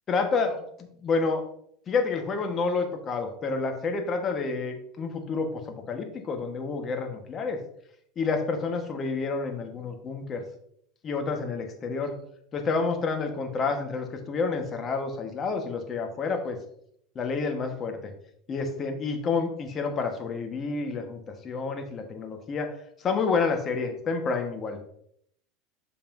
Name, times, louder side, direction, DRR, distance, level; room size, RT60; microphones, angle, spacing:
voice 1, 0.1-0.6 1.0-1.4 1.9-7.6 8.2-10.4 11.0-12.2 12.5-16.6 17.1-18.0 18.5-22.7 23.0-24.8, left 4 dB, 35° left, 5 dB, 1.2 m, -29 dB
6.7 x 5.6 x 2.6 m, 0.69 s
hypercardioid pair, 100°, 0 cm